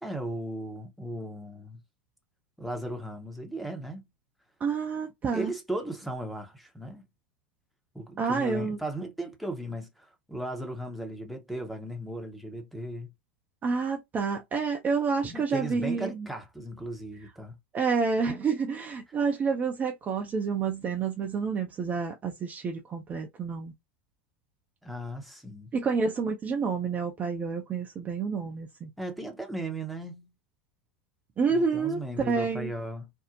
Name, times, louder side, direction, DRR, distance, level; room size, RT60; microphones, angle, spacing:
voice 1, 0.0-1.8 2.6-4.0 5.3-7.1 7.9-13.1 15.3-17.6 24.8-25.7 29.0-30.3 31.5-33.1, right 1 dB, ahead, 0.8 m, -36 dB
voice 2, 4.6-5.5 8.2-8.8 13.6-16.3 17.7-23.7 25.7-28.9 31.4-32.7, right 5 dB, 25° right, 0.6 m, -29 dB
2.6 x 2.0 x 2.7 m
figure-of-eight pair, 85°, 6 cm